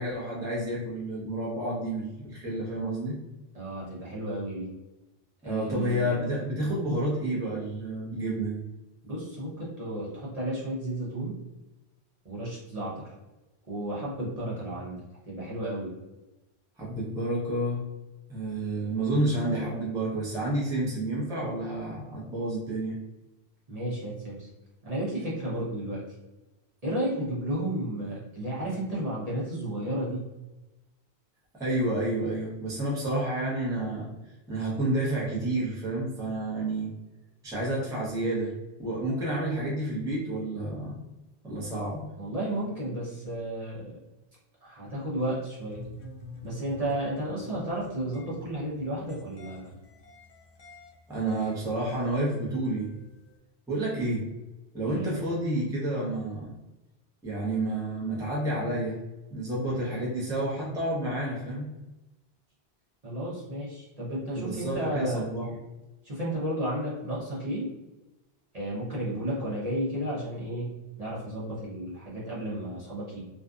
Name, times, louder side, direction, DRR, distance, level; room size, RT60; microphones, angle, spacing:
voice 1, 0.0-3.2 5.4-8.6 16.8-17.9 18.3-23.0 31.6-34.1 34.5-36.9 37.4-38.5 38.8-41.0 41.4-42.1 51.1-52.9 53.7-54.3 54.7-56.5 57.2-59.0 59.3-61.6 64.3-65.5, right 1 dB, 5° right, -6 dB, 0.5 m, -30 dB
voice 2, 3.5-4.7 5.4-6.2 9.0-11.3 12.2-13.1 13.7-15.9 23.7-24.5 24.8-26.0 26.8-30.3 41.7-41.8 42.2-44.0 44.6-45.8 46.4-49.7 54.8-55.2 63.0-65.2 66.0-67.7 68.5-70.7 71.0-73.2, right 1 dB, 40° right, -7 dB, 0.8 m, -33 dB
sound 1, 45.2-53.4, left 2 dB, 65° left, 0.7 m, -49 dB
2.6 x 2.3 x 2.4 m, 1.0 s
omnidirectional pair, 1.1 m